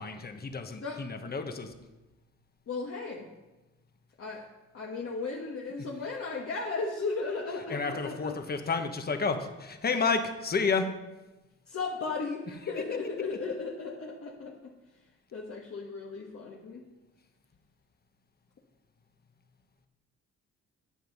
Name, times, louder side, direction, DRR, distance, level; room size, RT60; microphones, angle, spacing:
voice 1, 0.0-1.7 7.7-10.9 12.8-12.9, left 4 dB, 30° left, 6 dB, 1.3 m, -30 dB
voice 2, 2.7-3.3 4.2-4.4 4.7-8.4 11.7-14.7 15.3-16.8, left 4 dB, 50° left, -2 dB, 1.5 m, -35 dB
10.0 x 7.7 x 5.4 m, 1.1 s
cardioid pair, 90°, 30 cm